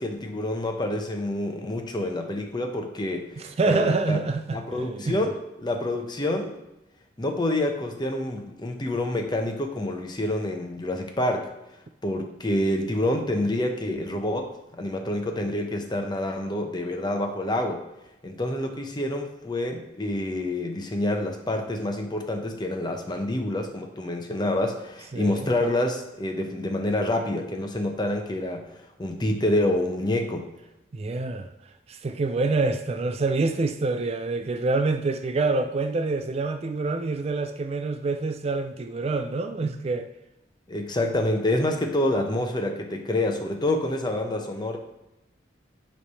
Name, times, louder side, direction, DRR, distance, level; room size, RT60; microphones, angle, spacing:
voice 1, 0.0-4.2 4.5-6.6 7.2-11.5 12.0-17.8 18.2-28.7 29.0-30.5 40.7-44.8, left 1 dB, 25° left, 0.8 m, -27 dB
voice 2, 3.4-5.2 25.1-25.5 30.9-31.5 31.9-40.1, right 3 dB, 35° right, 0.4 m, -26 dB
9.6 x 3.3 x 5.5 m
head